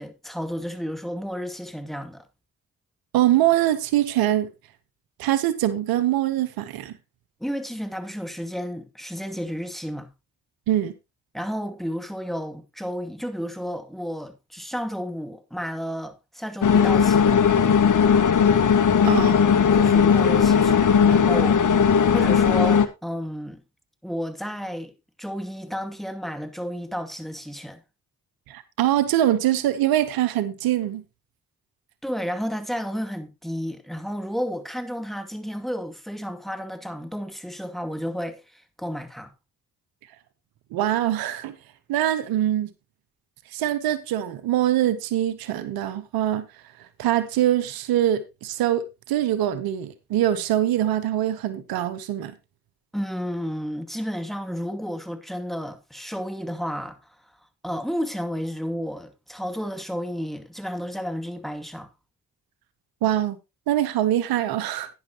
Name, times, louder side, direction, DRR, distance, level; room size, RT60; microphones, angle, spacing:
voice 1, 0.0-2.3 7.4-10.1 11.3-17.4 19.7-21.6 22.1-23.6 24.0-24.9 25.2-27.8 32.0-39.3 52.9-57.2 57.6-61.9, equal, ahead, 2.4 m, -32 dB
voice 2, 3.1-4.5 5.2-6.9 10.7-10.9 19.0-19.4 28.5-31.0 40.7-41.6 41.9-42.7 43.5-46.5 47.0-52.3 63.0-63.4 63.7-64.9, right 12 dB, 85° right, 0.9 m, -23 dB
sound 1, 16.6-22.9, left 7 dB, 60° left, 1.4 m, -18 dB
11.5 x 10.0 x 2.9 m
supercardioid pair, 40°, 35 cm